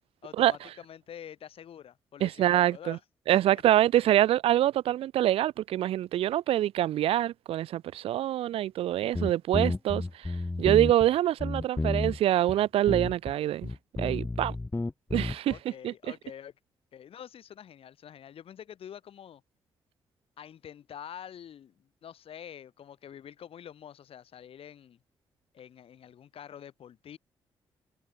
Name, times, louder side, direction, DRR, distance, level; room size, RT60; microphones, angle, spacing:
voice 1, 0.2-3.0 3.3-3.6 15.5-16.5 16.9-19.4 20.4-25.0 25.5-27.2, left 9 dB, 70° left, 6.9 m, -46 dB
voice 2, 2.2-3.0 3.3-13.7 14.0-14.5 15.1-15.5 15.8-15.9, right 13 dB, 70° right, 0.4 m, -25 dB
sound 1, 9.1-11.1 11.4-12.2 12.5-12.6 12.9-13.3 13.6-15.6, left 2 dB, 20° left, 2.1 m, -31 dB
supercardioid pair, 50°, 10 cm